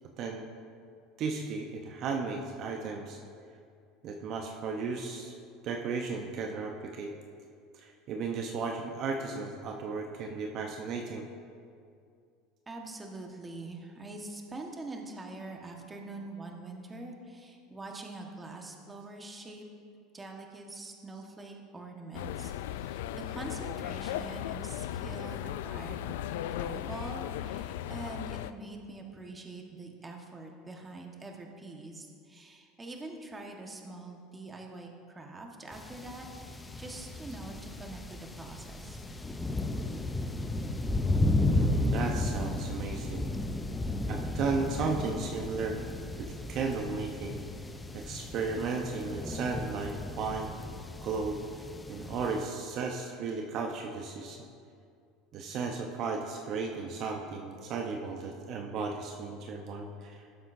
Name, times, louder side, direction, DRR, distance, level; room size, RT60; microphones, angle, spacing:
voice 1, 1.2-3.2 4.0-5.4 5.6-7.1 7.7-11.2 25.0-25.1 41.5-43.3 44.1-45.8 46.2-47.4 47.9-50.5 51.0-51.4 51.9-54.4 55.3-60.2, right 4 dB, 50° right, 2 dB, 0.9 m, -35 dB
voice 2, 12.7-19.7 20.1-36.3 36.8-39.0 44.9-45.2, right 2 dB, 20° right, 1 dB, 1.5 m, -44 dB
sound 1, 22.1-28.5, left 12 dB, 80° left, 0.3 m, -37 dB
sound 2, 35.7-52.4, left 2 dB, 15° left, 0.7 m, -34 dB
18.0 x 7.7 x 2.7 m, 2.3 s
supercardioid pair, 105°, 0 cm